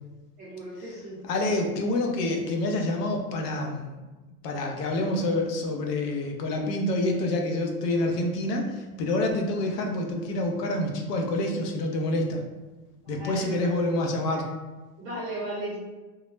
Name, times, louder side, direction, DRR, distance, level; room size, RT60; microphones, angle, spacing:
voice 1, 0.4-1.2 13.0-13.8 15.0-15.8, right 1 dB, 20° right, -9 dB, 0.5 m, -35 dB
voice 2, 1.3-4.0 4.4-12.4 13.1-14.5, left 1 dB, 75° left, 2 dB, 0.7 m, -27 dB
2.3 x 2.0 x 3.0 m, 1.2 s
supercardioid pair, 160°, 48 cm